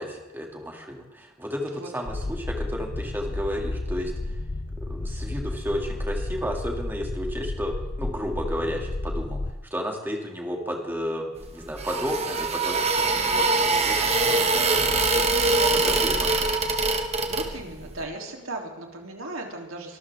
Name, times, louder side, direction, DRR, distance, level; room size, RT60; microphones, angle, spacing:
voice 1, 0.0-4.4 4.8-9.4 9.7-15.3 15.7-16.6, equal, 10° right, 1 dB, 2.5 m, -33 dB
sound 1, 2.1-9.5, left 2 dB, 35° left, 0.6 m, -32 dB
sound 2, 11.4-17.9, right 3 dB, 30° right, 1.5 m, -23 dB
voice 2, 17.3-20.0, right 2 dB, 85° right, 1 dB, 3.3 m, -36 dB
24.0 x 13.5 x 3.6 m, 1.1 s
head